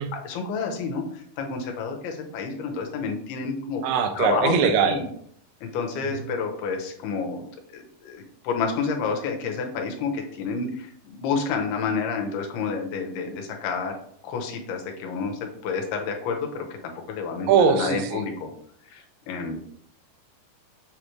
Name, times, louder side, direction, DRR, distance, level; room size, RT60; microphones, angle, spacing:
voice 1, 0.0-3.8 4.2-4.5 4.9-5.1 5.6-7.5 7.7-14.0 14.2-16.7 17.1-18.5 18.9-19.6, left 5 dB, 90° left, 2 dB, 2.8 m, -29 dB
voice 2, 3.8-5.1 6.0-6.2 17.5-18.3, right 6 dB, 75° right, 7 dB, 2.2 m, -21 dB
7.3 x 3.1 x 4.9 m, 0.66 s
omnidirectional pair, 4.4 m